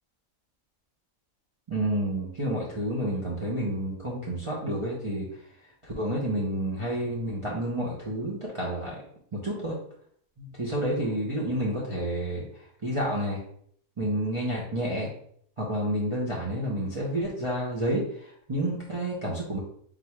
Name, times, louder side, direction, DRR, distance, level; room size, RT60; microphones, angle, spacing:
voice 1, 1.7-5.5 5.8-9.0 9.3-9.7 10.4-13.4 14.0-15.1 15.6-19.6, right 1 dB, 30° right, -5 dB, 0.7 m, -30 dB
3.8 x 2.6 x 4.5 m, 0.63 s
omnidirectional pair, 1.5 m